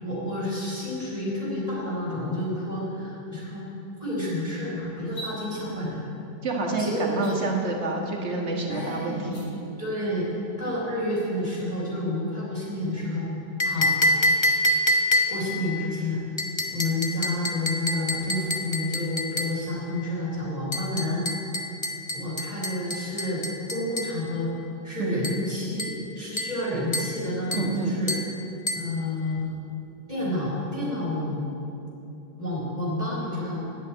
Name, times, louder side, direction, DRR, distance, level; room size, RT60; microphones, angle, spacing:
voice 1, 0.0-3.6 4.0-6.0 6.8-7.4 8.7-9.3 9.8-10.3 10.6-13.3 13.6-13.9 15.3-16.2 16.7-21.3 22.1-24.5 24.8-28.2 28.7-29.4 30.1-31.5 32.4-33.6, left 1 dB, 20° left, -10 dB, 3.2 m, -29 dB
sound 1, 5.0-5.3 7.1-7.3 9.2-9.4, right 2 dB, 75° left, 4.3 m, -39 dB
voice 2, 6.4-9.6 25.0-25.2 27.5-27.9, right 3 dB, 40° right, 0 dB, 1.7 m, -28 dB
sound 2, 13.6-15.6 16.4-19.6 20.7-24.2 25.2-25.5 25.8-26.0 26.4-26.6 26.9-27.2 27.5-27.7 28.1-28.3 28.7-28.9, left 1 dB, 50° left, 0.3 m, -27 dB
10.0 x 8.5 x 8.7 m, 2.9 s
omnidirectional pair, 1.9 m